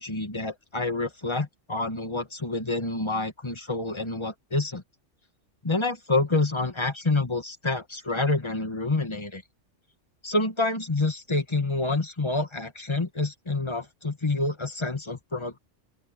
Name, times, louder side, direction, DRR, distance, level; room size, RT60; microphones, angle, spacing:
voice 1, 0.0-4.8 5.6-9.4 10.2-15.6, left 2 dB, 20° left, 1.7 m, -28 dB
open air
omnidirectional pair, 1.3 m